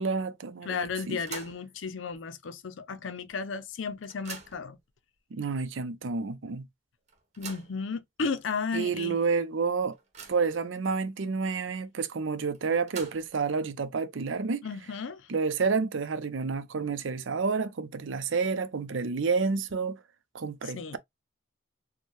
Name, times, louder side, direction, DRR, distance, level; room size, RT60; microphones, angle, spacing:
voice 1, 0.0-1.2 5.3-6.7 8.7-10.0 10.3-14.7 15.3-20.0 20.3-21.0, right 4 dB, 70° right, 0.5 m, -29 dB
voice 2, 0.6-4.8 7.4-9.2 14.6-15.3 20.6-21.0, left 5 dB, 70° left, 0.5 m, -34 dB
sound 1, 1.0-1.7 2.1-2.2 3.3-3.4 3.7-4.8 5.5-5.6 6.0-6.1 7.1-7.8 8.5-8.6 9.0-9.1 9.6-10.6 12.5-13.5, right 5 dB, 35° right, 1.1 m, -45 dB
4.4 x 2.2 x 3.1 m
head